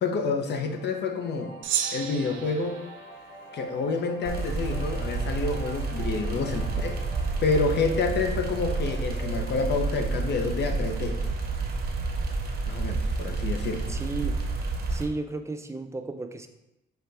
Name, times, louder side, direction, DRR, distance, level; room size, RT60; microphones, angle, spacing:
voice 1, 0.0-1.5 1.9-2.8 3.5-7.0 7.4-11.2 12.7-13.9, left 4 dB, 60° left, 6 dB, 0.7 m, -28 dB
sound 1, 0.5-11.6, equal, 75° left, 1.1 m, -47 dB
Gong, 1.6-4.3, right 9 dB, 80° right, 0.5 m, -34 dB
sound 2, 4.2-15.1, right 3 dB, 55° right, 0.8 m, -30 dB
voice 2, 13.9-14.4 14.9-16.5, right 3 dB, 15° right, 7 dB, 0.4 m, -33 dB
5.7 x 2.8 x 3.4 m, 0.92 s
cardioid pair, 90°, 20 cm